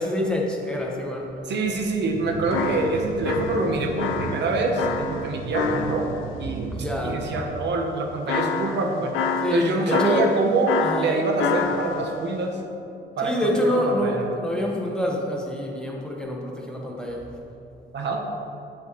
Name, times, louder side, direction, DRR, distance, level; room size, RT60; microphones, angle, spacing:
voice 1, 0.0-1.3 6.7-7.2 9.4-10.3 10.8-11.2 13.2-17.3, equal, 5° left, -2 dB, 1.3 m, -26 dB
voice 2, 1.5-6.1 6.4-6.7 7.0-9.1 9.5-12.6 13.2-13.3 13.7-14.3 17.9-18.2, right 2 dB, 60° right, 2 dB, 0.9 m, -25 dB
sound 1, 2.1-7.4, right 5 dB, 85° right, 0.7 m, -35 dB
sound 2, 2.5-6.3 8.3-12.2, left 5 dB, 85° left, 0.5 m, -28 dB
8.4 x 7.5 x 3.1 m, 2.7 s
cardioid pair, 90°, 20 cm